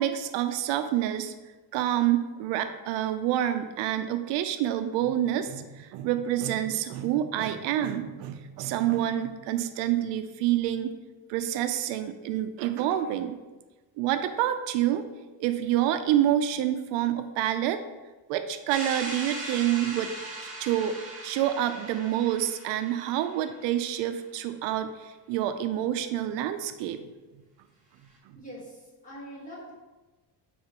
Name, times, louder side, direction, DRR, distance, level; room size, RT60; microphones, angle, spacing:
voice 1, 0.0-1.3 1.7-10.9 11.3-13.4 14.0-15.0 15.4-17.9 18.3-20.1 20.4-27.0, right 11 dB, 75° right, 9 dB, 0.5 m, -27 dB
sound 1, 18.7-23.5, right 2 dB, 20° right, 1.7 m, -39 dB
voice 2, 28.4-29.7, equal, 15° left, -6 dB, 1.8 m, -43 dB
9.4 x 4.2 x 2.9 m, 1.2 s
cardioid pair, 175°, 44 cm